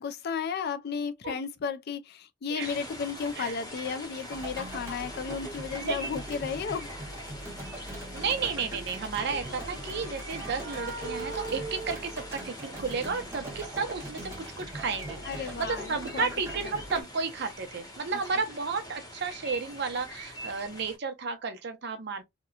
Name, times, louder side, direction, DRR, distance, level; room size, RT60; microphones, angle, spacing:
voice 1, 0.0-6.9 15.3-16.3, left 6 dB, 55° left, 0.4 m, -34 dB
sound 1, 2.6-21.0, equal, 20° left, 0.8 m, -43 dB
sound 2, 4.3-17.0, right 1 dB, 15° right, 1.0 m, -41 dB
voice 2, 5.2-6.1 8.1-14.3 14.6-22.2, right 5 dB, 60° right, 0.6 m, -33 dB
sound 3, 9.1-13.0, right 3 dB, 80° right, 1.1 m, -41 dB
2.9 x 2.1 x 2.3 m
head